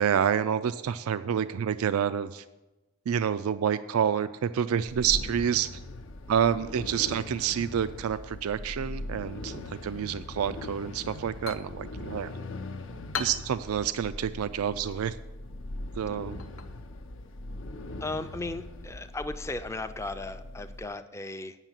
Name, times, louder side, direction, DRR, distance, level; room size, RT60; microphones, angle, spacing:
voice 1, 0.0-2.4 3.1-5.8 6.3-12.3 13.2-15.2 16.0-16.4, right 8 dB, 90° right, 14 dB, 0.4 m, -28 dB
sound 1, 4.9-20.9, left 2 dB, 60° left, 0.6 m, -40 dB
sound 2, 11.1-18.6, left 6 dB, 80° left, 0.9 m, -44 dB
voice 2, 18.0-21.6, left 2 dB, 15° left, 10 dB, 0.4 m, -36 dB
9.0 x 6.3 x 7.4 m, 1.1 s
head